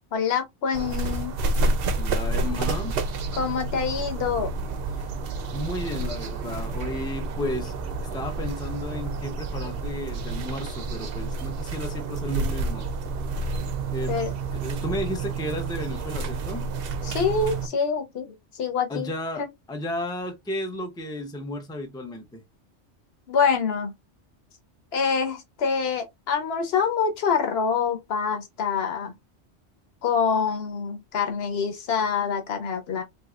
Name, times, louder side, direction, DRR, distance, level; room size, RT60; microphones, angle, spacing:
voice 1, 0.1-1.3 3.3-4.5 14.1-14.3 17.0-19.1 19.4-19.5 23.3-23.9 24.9-29.1 30.0-33.0, left 6 dB, 60° left, 1.2 m, -26 dB
sound 1, 0.7-17.7, right 3 dB, 60° right, 0.7 m, -29 dB
voice 2, 2.0-3.0 4.9-5.1 5.5-7.7 8.0-12.9 13.9-14.2 14.5-16.7 18.9-22.4, left 1 dB, 5° left, 0.5 m, -33 dB
3.5 x 3.0 x 2.4 m
omnidirectional pair, 1.2 m